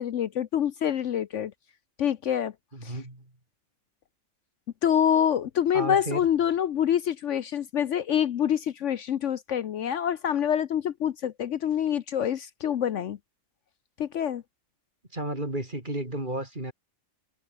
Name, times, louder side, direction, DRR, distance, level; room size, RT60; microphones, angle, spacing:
voice 1, 0.0-1.5 2.0-2.5 2.8-2.9 4.8-13.2 14.0-14.4, left 9 dB, 65° left, 1.0 m, -26 dB
voice 2, 2.7-3.3 5.7-6.3 15.1-16.7, right 1 dB, 35° right, 4.9 m, -32 dB
omnidirectional pair, 1.4 m